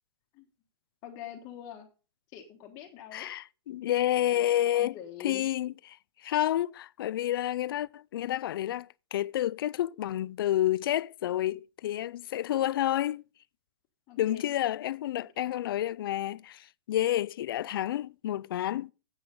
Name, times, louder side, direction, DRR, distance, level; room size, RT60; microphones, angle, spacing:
voice 1, 1.0-1.9 2.3-3.3 4.1-4.4 4.7-5.5 14.1-14.5 15.1-15.3, left 9 dB, 25° left, 1.3 m, -45 dB
voice 2, 3.1-5.0 5.2-6.0 6.2-13.2 14.2-18.9, left 13 dB, 60° left, 0.4 m, -29 dB
9.6 x 7.8 x 5.2 m
hypercardioid pair, 160°, 13 cm